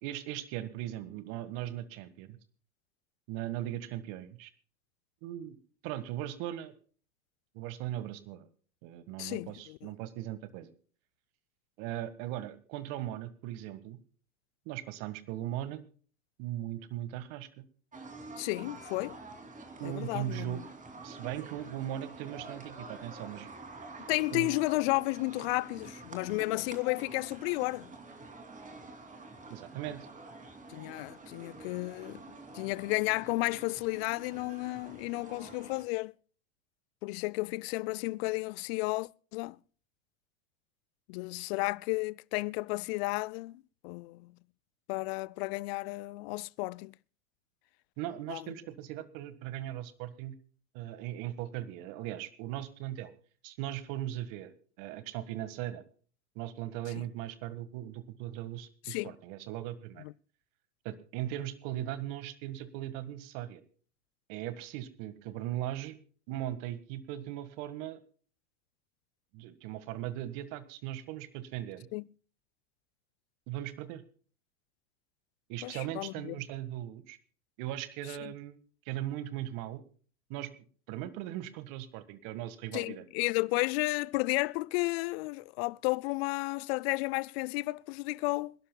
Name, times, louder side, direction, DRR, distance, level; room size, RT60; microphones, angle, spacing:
voice 1, 0.0-2.4 3.3-4.5 5.2-5.6 5.8-6.7 7.5-8.5 8.8-10.7 11.8-14.0 14.7-15.8 16.4-17.6 19.8-20.6 21.0-23.5 24.3-24.6 29.5-30.1 48.0-50.3 50.7-53.1 53.4-54.5 54.8-55.8 56.4-60.0 60.9-63.6 64.3-66.0 66.3-68.0 69.3-71.9 73.5-74.0 75.5-77.2 77.6-78.6 78.9-79.8 80.3-80.5 80.9-83.0, right 13 dB, 50° right, 1.7 m, -38 dB
voice 2, 9.2-9.9 18.4-19.2 19.8-20.6 24.1-27.9 30.7-32.2 32.5-36.1 37.0-39.6 41.1-44.3 44.9-46.9 48.3-48.4 58.9-59.1 60.0-60.1 71.9-72.0 75.6-76.4 78.2-78.3 82.7-88.5, left 24 dB, 50° left, 0.5 m, -33 dB
sound 1, 17.9-35.9, right 3 dB, 20° right, 2.8 m, -48 dB
27.0 x 11.5 x 2.3 m
hypercardioid pair, 95°, 40 cm